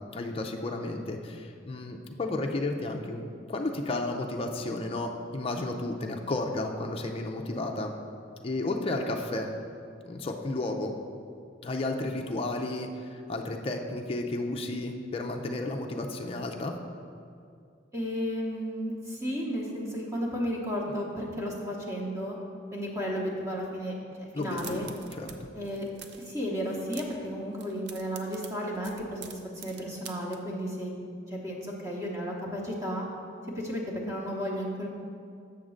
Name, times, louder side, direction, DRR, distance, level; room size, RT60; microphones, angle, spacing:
voice 1, 0.1-7.9 8.4-9.5 10.1-10.9 11.6-16.7 24.3-25.5, left 2 dB, 30° left, 2 dB, 0.4 m, -32 dB
voice 2, 17.9-22.4 22.7-24.9 25.5-25.8 26.2-31.0 31.3-33.1 33.5-34.9, equal, 15° right, -3 dB, 0.9 m, -33 dB
sound 1, 24.4-25.4 25.6-26.3 26.6-27.3 27.5-30.4, right 7 dB, 60° right, 0.5 m, -46 dB
7.1 x 3.7 x 6.4 m, 2.4 s
head